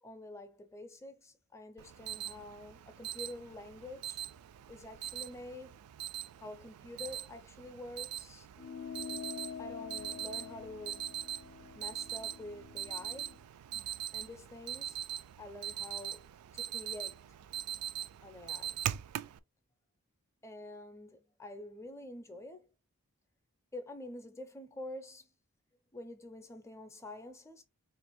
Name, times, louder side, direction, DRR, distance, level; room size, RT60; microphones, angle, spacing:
voice 1, 0.0-4.2 4.7-5.8 6.4-8.5 9.6-11.2 11.7-13.3 14.1-15.0 15.4-16.3 16.5-17.2 18.2-18.9 20.4-22.7 23.7-25.3 25.9-27.6, left 1 dB, 10° left, 0.5 m, -47 dB
Alarm, 1.8-19.4, right 11 dB, 90° right, 0.3 m, -42 dB
sound 1, 8.6-13.4, left 7 dB, 65° left, 0.5 m, -46 dB
3.3 x 2.5 x 4.5 m
head